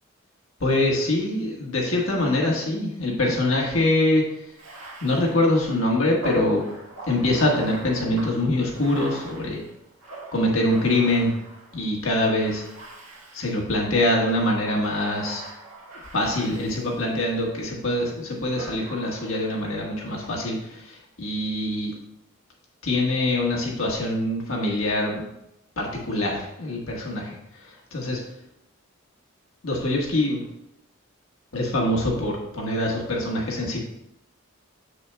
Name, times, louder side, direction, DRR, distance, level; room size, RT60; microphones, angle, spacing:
voice 1, 0.6-4.2 5.0-6.6 7.1-9.6 10.3-11.3 11.7-12.6 13.3-15.5 16.1-21.9 22.8-25.2 25.8-28.2 29.6-30.4 31.5-33.8, left 1 dB, 75° left, -1 dB, 1.4 m, -24 dB
Bathtub (filling or washing), 4.5-11.8 12.4-13.7 14.2-17.4 18.6-19.6, right 1 dB, 75° right, 1.6 m, -42 dB
7.1 x 6.6 x 2.3 m, 0.84 s
head